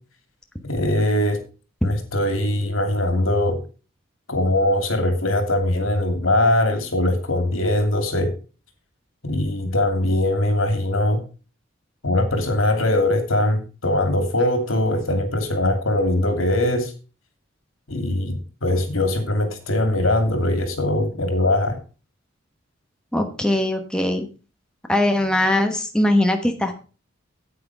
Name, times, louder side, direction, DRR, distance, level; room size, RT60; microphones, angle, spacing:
voice 1, 0.6-1.4 1.8-3.6 4.3-8.3 9.2-11.2 12.0-16.9 17.9-18.4 18.6-21.8, left 1 dB, 85° left, 6 dB, 2.6 m, -21 dB
voice 2, 23.1-24.2 24.9-26.8, left 1 dB, 5° left, 4 dB, 1.2 m, -21 dB
9.5 x 8.7 x 4.7 m, 0.35 s
head